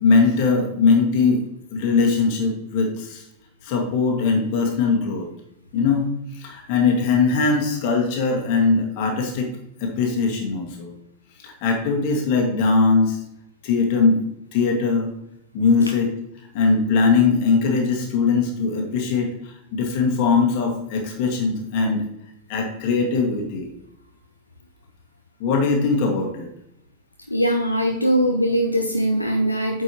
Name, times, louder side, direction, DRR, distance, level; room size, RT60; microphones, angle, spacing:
voice 1, 0.0-3.2 3.6-5.3 5.7-6.1 6.4-9.5 9.8-10.9 11.4-13.2 13.6-14.2 14.5-15.1 15.5-16.1 16.5-22.1 22.5-23.7 25.4-26.5, left 4 dB, 45° left, 1 dB, 1.9 m, -20 dB
voice 2, 27.3-29.8, equal, 85° left, 2 dB, 0.7 m, -21 dB
8.6 x 5.6 x 3.0 m, 0.80 s
figure-of-eight pair, 90°, 0 cm